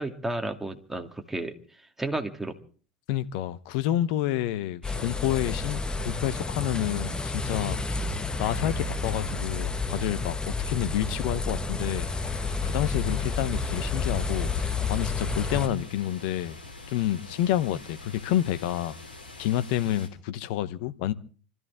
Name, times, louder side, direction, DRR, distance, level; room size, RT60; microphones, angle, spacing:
voice 1, 0.0-1.5 2.0-2.5 4.8-5.0, right 2 dB, 5° right, 2.3 m, -32 dB
voice 2, 3.1-8.1 8.4-12.1 12.6-16.6 16.9-19.0 19.4-21.1, left 12 dB, 60° left, 1.0 m, -29 dB
sound 1, 4.8-15.7, left 3 dB, 15° left, 1.5 m, -30 dB
sound 2, 12.0-20.1, left 2 dB, 90° left, 3.1 m, -45 dB
25.5 x 14.0 x 3.7 m
hypercardioid pair, 80°, 5 cm